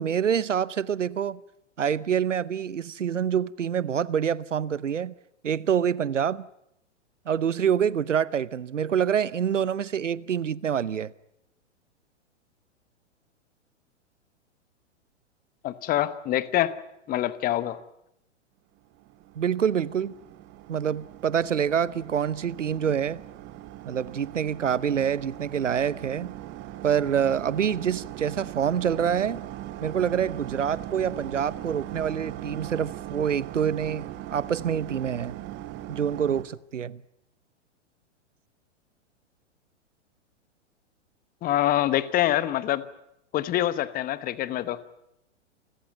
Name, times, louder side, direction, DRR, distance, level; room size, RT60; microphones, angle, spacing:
voice 1, 0.0-1.4 1.8-5.1 5.4-6.5 7.3-11.1 19.4-20.1 20.7-23.2 23.9-26.3 26.8-29.4 29.8-35.4 35.9-37.0, right 8 dB, 80° right, 0.8 m, -26 dB
voice 2, 15.6-16.7 17.1-17.8 41.4-42.8 43.3-44.8, left 13 dB, 25° left, 1.1 m, -25 dB
sound 1, 18.9-36.4, right 14 dB, 30° right, 1.6 m, -40 dB
29.0 x 14.5 x 9.4 m
figure-of-eight pair, 110°, 36 cm